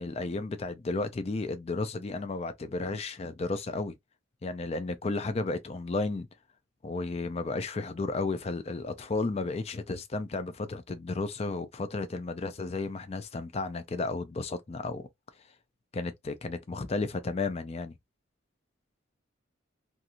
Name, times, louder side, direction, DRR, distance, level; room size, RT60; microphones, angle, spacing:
voice 1, 0.0-3.9 4.4-6.3 6.8-15.1 15.9-18.0, left 3 dB, 35° left, 0.4 m, -33 dB
2.6 x 2.5 x 2.8 m
head